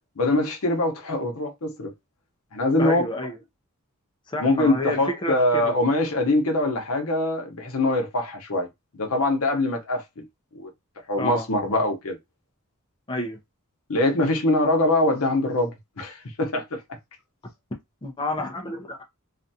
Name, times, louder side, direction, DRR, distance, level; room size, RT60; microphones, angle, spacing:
voice 1, 0.2-1.9 2.5-3.0 4.4-8.7 8.9-10.2 10.5-10.7 11.1-12.2 13.9-16.8, left 2 dB, 70° left, 0.8 m, -23 dB
voice 2, 2.8-3.4 4.3-5.7 11.2-11.5 11.7-11.9 13.1-13.4 18.0-19.0, left 2 dB, 20° left, 0.5 m, -30 dB
2.5 x 2.2 x 2.7 m
head